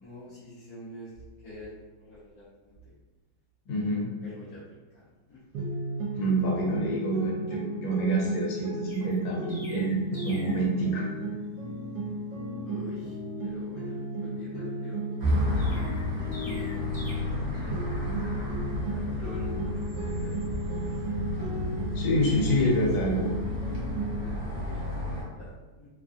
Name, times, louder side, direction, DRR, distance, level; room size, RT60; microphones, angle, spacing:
voice 1, 0.0-1.1 1.4-2.8 4.2-5.0 5.3-5.4 6.8-7.0 12.6-15.0 16.4-18.1 18.4-20.4 20.7-20.9 22.6-23.1 24.2-25.9, left 2 dB, 60° left, -11 dB, 1.1 m, -46 dB
voice 2, 3.7-4.1 6.1-10.0 10.2-11.1 21.9-23.3, right 1 dB, 85° left, -4 dB, 1.4 m, -27 dB
sound 1, 5.5-17.4 17.7-24.2, right 2 dB, 70° right, 1.2 m, -35 dB
Chirp tweet, 8.9-10.7 15.6-17.1, left 1 dB, 15° left, 0.9 m, -46 dB
sound 2, 15.2-25.2, left 1 dB, 55° right, 0.9 m, -32 dB
3.2 x 2.3 x 2.5 m, 1.2 s
omnidirectional pair, 1.9 m